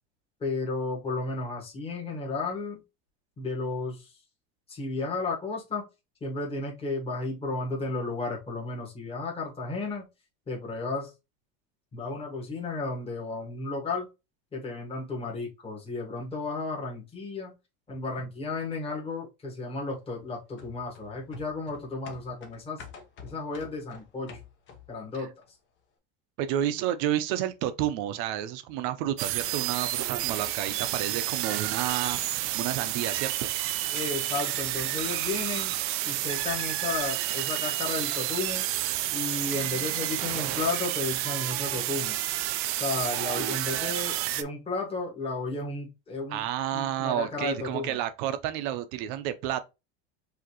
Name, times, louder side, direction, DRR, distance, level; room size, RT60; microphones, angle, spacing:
voice 1, 0.4-2.8 3.4-4.1 4.7-5.8 6.2-10.0 10.5-11.1 11.9-14.1 14.5-17.5 17.9-22.8 23.2-24.4 24.9-25.3 33.9-35.8 36.0-38.6 39.1-42.1 42.8-46.4 46.7-48.0, left 3 dB, 15° left, 1.6 m, -33 dB
sound 1, 20.6-25.0 25.4-25.5, left 5 dB, 35° left, 1.0 m, -48 dB
voice 2, 26.4-33.5 46.3-49.6, right 11 dB, 65° right, 0.8 m, -30 dB
sound 2, 29.2-44.4, right 14 dB, 40° right, 0.4 m, -30 dB
4.9 x 2.9 x 2.9 m
cardioid pair, 150°, 34 cm